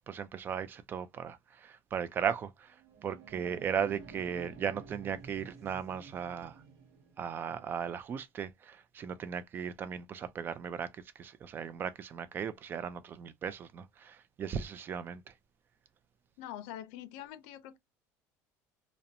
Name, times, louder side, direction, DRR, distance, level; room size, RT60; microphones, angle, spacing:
voice 1, 0.1-2.8 3.0-6.6 7.2-15.3, right 7 dB, 30° right, 0.3 m, -37 dB
sound 1, 2.7-7.3, right 5 dB, 55° right, 0.7 m, -52 dB
voice 2, 16.4-17.8, left 12 dB, 85° left, 0.4 m, -44 dB
2.5 x 2.0 x 2.6 m
cardioid pair, 150°, 7 cm